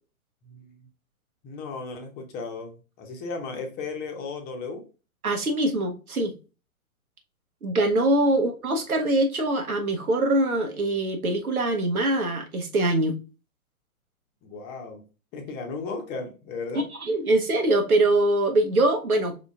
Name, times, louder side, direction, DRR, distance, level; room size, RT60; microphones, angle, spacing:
voice 1, 1.4-4.8 14.4-15.0 15.3-16.8, left 4 dB, 20° left, 0.9 m, -35 dB
voice 2, 5.2-6.3 7.6-13.2 17.0-19.3, right 1 dB, 80° right, 1.2 m, -23 dB
5.0 x 4.0 x 2.4 m
figure-of-eight pair, 120°, 43 cm